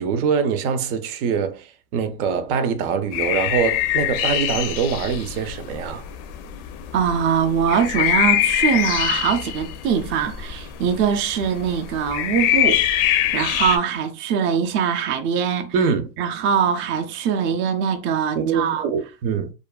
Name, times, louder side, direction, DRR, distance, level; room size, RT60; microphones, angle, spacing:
voice 1, 0.0-6.1 15.7-16.1 18.3-19.5, right 6 dB, 85° right, 0.6 m, -23 dB
sound 1, 3.1-13.8, left 12 dB, 75° left, 0.5 m, -24 dB
voice 2, 6.9-15.7 16.2-18.8, right 7 dB, 30° right, 0.3 m, -22 dB
2.4 x 2.3 x 2.2 m
supercardioid pair, 110°, 42 cm